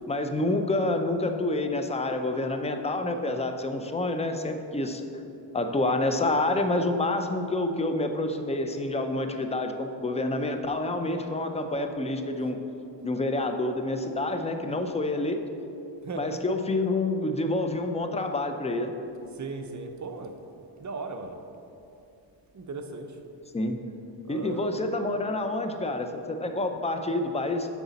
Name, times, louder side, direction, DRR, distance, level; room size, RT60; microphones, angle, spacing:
voice 1, 0.1-5.0 5.5-12.6 13.0-15.4 16.2-18.9 23.5-23.8 24.3-27.7, left 2 dB, 15° left, 6 dB, 0.5 m, -28 dB
voice 2, 16.0-16.4 19.3-20.3 20.8-21.4 22.5-23.2 24.2-24.8, right 3 dB, 40° right, 5 dB, 0.7 m, -37 dB
8.0 x 6.0 x 4.1 m, 2.7 s
cardioid pair, 100°, 46 cm